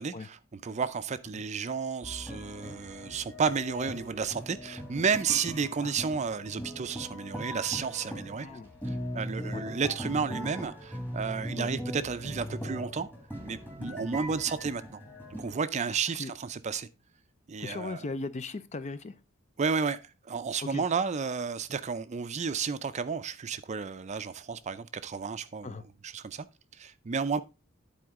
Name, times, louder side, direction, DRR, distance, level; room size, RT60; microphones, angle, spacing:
voice 1, 0.0-8.5 8.8-13.1 13.4-15.0 15.4-16.9 17.5-18.0 19.6-20.0 20.2-25.8 26.0-26.5 26.8-27.4, right 5 dB, 35° right, 0.4 m, -32 dB
sound 1, 2.0-15.6, equal, 10° left, 1.8 m, -40 dB
voice 2, 15.8-16.3 17.6-19.2 20.7-20.8 25.6-25.8, left 3 dB, 35° left, 0.5 m, -38 dB
11.0 x 4.3 x 3.6 m
head